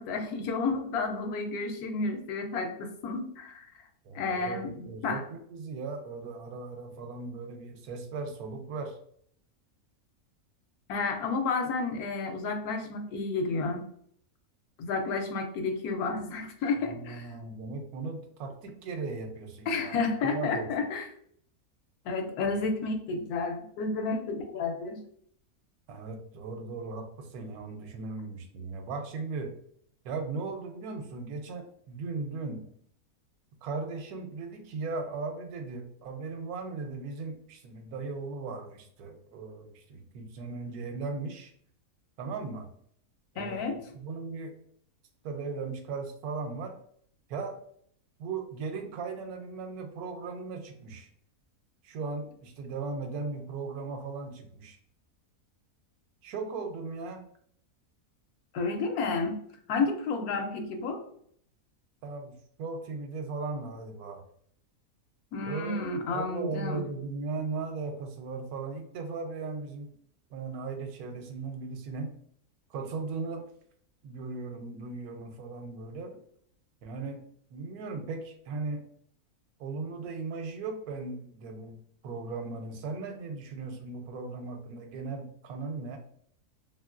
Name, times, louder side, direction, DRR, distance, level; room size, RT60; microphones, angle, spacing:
voice 1, 0.0-3.6 4.1-5.2 10.9-13.9 14.8-17.3 19.7-21.1 22.0-25.0 43.4-43.8 58.5-59.4 59.7-61.0 65.3-66.8, left 4 dB, 80° left, 5 dB, 1.1 m, -31 dB
voice 2, 4.0-9.0 16.8-20.7 25.9-29.5 30.0-32.6 33.6-41.5 42.2-42.7 43.3-44.5 45.2-46.8 47.3-47.6 48.2-51.1 51.8-54.8 56.2-57.2 62.0-62.3 62.6-64.2 65.4-65.8 66.1-69.9 70.3-72.1 72.7-73.4 74.0-76.2 76.8-77.2 77.5-78.8 79.6-81.8 82.0-86.0, right 4 dB, 80° right, 5 dB, 1.1 m, -37 dB
2.9 x 2.7 x 2.4 m, 0.64 s
omnidirectional pair, 1.6 m